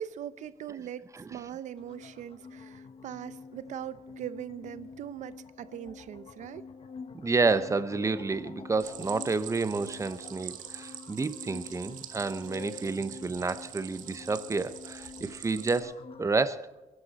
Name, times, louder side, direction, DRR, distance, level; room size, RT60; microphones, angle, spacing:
voice 1, 0.0-6.6, right 10 dB, 70° right, 0.8 m, -41 dB
sound 1, 1.8-16.2, left 5 dB, 45° left, 1.1 m, -47 dB
voice 2, 7.1-16.7, right 3 dB, 25° right, 1.0 m, -30 dB
Stream, 8.8-15.8, right 11 dB, 90° right, 1.3 m, -45 dB
23.0 x 11.5 x 4.3 m
cardioid pair, 100°, 13 cm